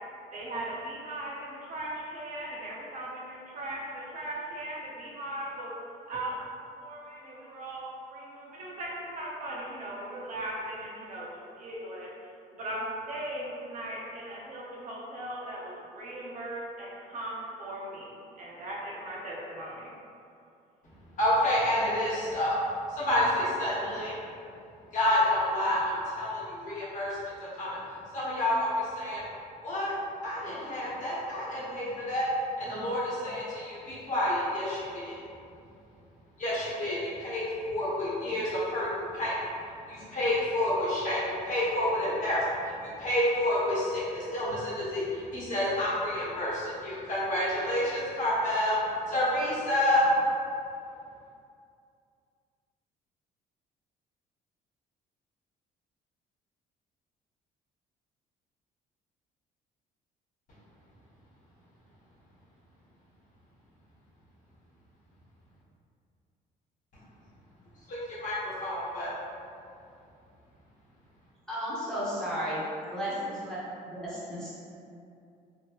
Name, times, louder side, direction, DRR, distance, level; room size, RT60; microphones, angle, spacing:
voice 1, 0.3-5.7 6.1-6.5 6.7-12.1 12.6-19.9, right 1 dB, 50° right, -4 dB, 0.7 m, -38 dB
voice 2, 21.2-22.6 22.9-24.2 24.9-27.2 27.6-27.8 28.1-29.2 29.6-29.9 30.2-32.3 32.6-35.2 36.4-38.9 39.1-39.4 39.9-48.8 49.1-50.1 67.9-69.1, left 1 dB, 50° left, -9 dB, 1.1 m, -29 dB
voice 3, 71.5-72.6 72.9-73.6 73.8-74.5, equal, 5° left, -10 dB, 0.8 m, -33 dB
3.0 x 2.1 x 2.9 m, 2.5 s
cardioid pair, 110°, 17 cm